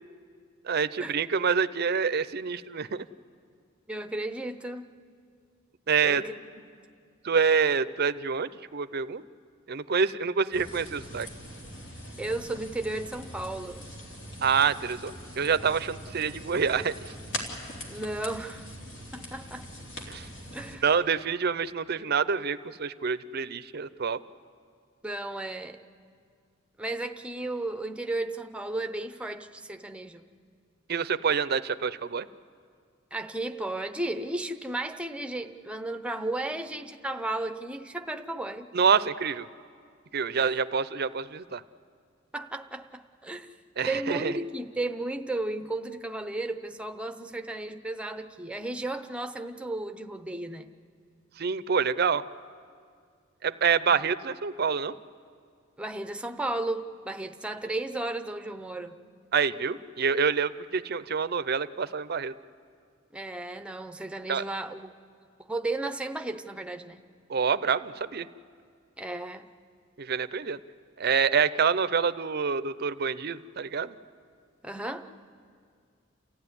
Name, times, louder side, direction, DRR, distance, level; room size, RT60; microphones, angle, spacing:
voice 1, 0.6-3.1 5.9-6.2 7.2-9.2 9.7-11.3 14.4-16.9 20.1-20.3 20.8-24.2 30.9-32.3 38.7-39.5 40.1-41.6 43.8-44.3 51.4-52.2 53.4-54.9 59.3-62.3 64.3-64.4 67.3-68.3 70.0-70.6 71.0-73.9, right 6 dB, 50° right, 14 dB, 0.6 m, -27 dB
voice 2, 3.9-4.9 6.0-6.3 12.2-13.9 17.9-18.7 19.1-19.7 20.5-20.9 25.0-25.8 26.8-30.2 33.1-38.7 40.4-40.5 42.3-43.5 43.9-50.7 53.9-54.0 55.8-59.0 63.1-64.9 65.5-67.0 69.0-69.5 74.6-75.1, right 2 dB, 5° right, 7 dB, 0.8 m, -34 dB
sound 1, 10.5-20.8, equal, 60° left, 3.5 m, -42 dB
29.0 x 15.0 x 9.7 m, 2.2 s
head